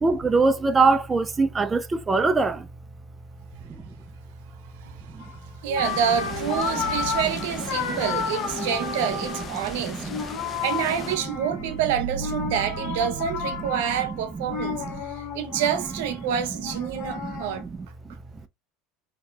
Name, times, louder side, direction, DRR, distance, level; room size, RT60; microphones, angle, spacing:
voice 1, 0.0-2.7 5.1-5.2 7.9-8.0 8.6-8.7 9.9-10.2 12.4-12.5 12.9-13.0 13.7-13.8 14.1-14.5 14.7-14.9 15.5-15.6 16.9-17.7, right 4 dB, 20° right, 0.4 m, -24 dB
sound 1, 5.2-5.3 5.7-9.7 10.1-11.8 12.2-17.6, left 6 dB, 55° left, 1.2 m, -32 dB
voice 2, 5.6-10.1 10.6-14.8 15.1-17.7, right 8 dB, 80° right, 0.6 m, -27 dB
sound 2, 5.8-11.2, left 5 dB, 35° left, 0.6 m, -39 dB
sound 3, 11.2-15.7, right 6 dB, 85° left, 0.8 m, -38 dB
3.7 x 2.7 x 2.2 m
supercardioid pair, 115°, 0 cm